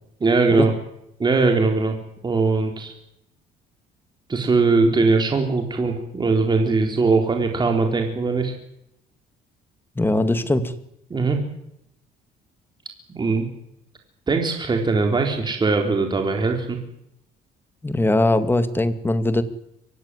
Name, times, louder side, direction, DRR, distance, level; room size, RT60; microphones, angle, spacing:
voice 1, 0.2-0.7 1.2-2.0 2.2-2.9 4.3-8.5 11.1-11.4 13.1-13.5 14.3-16.8, right 3 dB, 25° right, 3 dB, 4.0 m, -20 dB
voice 2, 10.0-10.7 17.8-19.4, left 2 dB, 10° left, 10 dB, 2.2 m, -20 dB
24.5 x 16.5 x 9.8 m, 0.80 s
cardioid pair, 110°, 17 cm